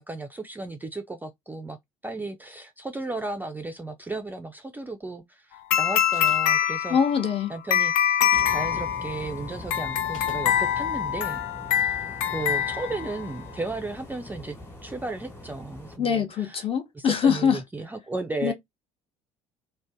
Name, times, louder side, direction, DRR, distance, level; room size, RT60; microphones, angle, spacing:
voice 1, 0.0-1.8 2.0-7.0 7.5-7.9 8.5-11.4 11.7-12.0 12.3-14.6 14.8-16.7 16.9-18.5, right 2 dB, 10° right, 0.4 m, -34 dB
sound 1, 5.7-13.4, left 9 dB, 65° left, 0.4 m, -25 dB
sound 2, 6.1-6.6 8.1-8.6 10.1-10.5, left 1 dB, 90° left, 0.8 m, -45 dB
voice 2, 6.9-7.5 16.0-17.6 18.4-18.5, left 7 dB, 35° left, 0.8 m, -23 dB
sound 3, 8.3-16.0, left 1 dB, 15° left, 1.2 m, -42 dB
2.5 x 2.1 x 3.4 m
figure-of-eight pair, 55°, 17 cm